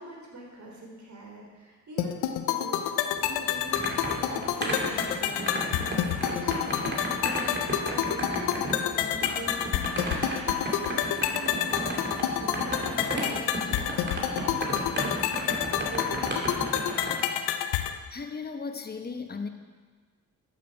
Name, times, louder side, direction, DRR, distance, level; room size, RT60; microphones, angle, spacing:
voice 1, 0.0-13.8 14.2-16.3, right 2 dB, 50° right, -1 dB, 3.6 m, -44 dB
sound 1, 2.0-18.0, left 10 dB, 85° left, 0.6 m, -29 dB
sound 2, 3.2-17.2, right 1 dB, 30° right, 2.7 m, -34 dB
voice 2, 18.1-19.5, left 4 dB, 25° left, 7 dB, 1.0 m, -36 dB
12.0 x 7.2 x 4.8 m, 1.5 s
supercardioid pair, 50°, 37 cm